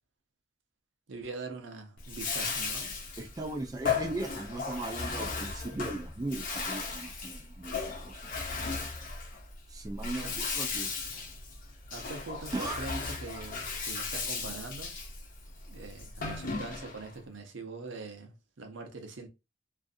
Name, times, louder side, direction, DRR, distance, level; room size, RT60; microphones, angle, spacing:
voice 1, 1.1-3.2 10.2-10.3 11.9-15.0 15.7-19.3, right 3 dB, 70° right, 0.7 m, -43 dB
Bathtub (filling or washing), 2.0-17.1, left 4 dB, 45° left, 0.8 m, -36 dB
voice 2, 3.2-8.3 9.7-10.9 12.5-12.8, right 2 dB, 20° right, 0.4 m, -38 dB
2.5 x 2.5 x 2.4 m
head